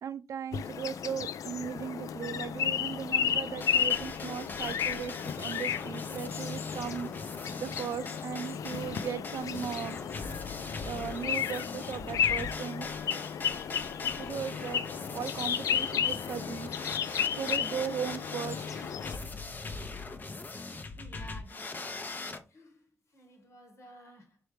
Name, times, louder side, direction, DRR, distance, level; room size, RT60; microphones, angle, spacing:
voice 1, 0.0-10.0 10.8-12.9 14.2-14.8 15.1-16.7 17.4-18.8, right 8 dB, 70° right, 0.3 m, -37 dB
sound 1, 0.5-19.2, left 8 dB, 75° left, 0.3 m, -33 dB
sound 2, 3.6-22.4, left 3 dB, 35° left, 0.7 m, -41 dB
voice 2, 20.9-24.4, equal, 55° left, 1.5 m, -54 dB
4.5 x 3.2 x 3.3 m
cardioid pair, 90°, 6 cm